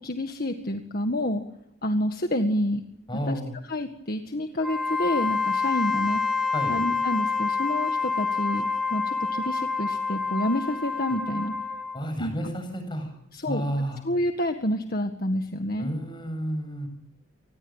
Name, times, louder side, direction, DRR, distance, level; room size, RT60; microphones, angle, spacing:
voice 1, 0.0-1.4 1.8-2.8 3.3-3.4 3.7-6.2 6.7-11.5 12.2-12.3 13.3-13.7 14.0-15.9, left 1 dB, 45° left, 5 dB, 1.8 m, -28 dB
voice 2, 3.1-3.5 6.5-6.8 11.9-13.1 13.4-14.0 15.8-16.9, equal, 25° left, 7 dB, 7.8 m, -31 dB
Wind instrument woodwind instrument, 4.6-12.1, left 4 dB, ahead, 1.7 m, -27 dB
29.0 x 21.0 x 9.0 m, 0.82 s
head